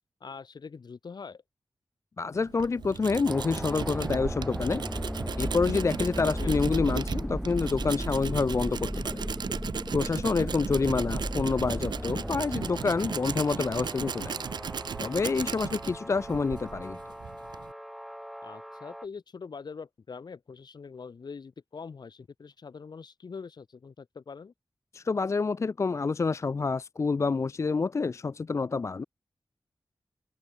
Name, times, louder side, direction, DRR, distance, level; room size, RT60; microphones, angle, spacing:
voice 1, 0.2-1.4 6.4-6.6 18.4-24.5, left 5 dB, 70° left, 2.4 m, -43 dB
voice 2, 2.2-4.8 5.4-9.2 9.9-14.4 15.0-17.0 24.9-29.0, left 4 dB, 40° left, 0.4 m, -28 dB
Tools, 2.3-17.7, right 7 dB, 75° right, 0.4 m, -36 dB
sound 1, 3.2-19.0, equal, ahead, 0.6 m, -36 dB
wide cardioid pair, 85°, 8 cm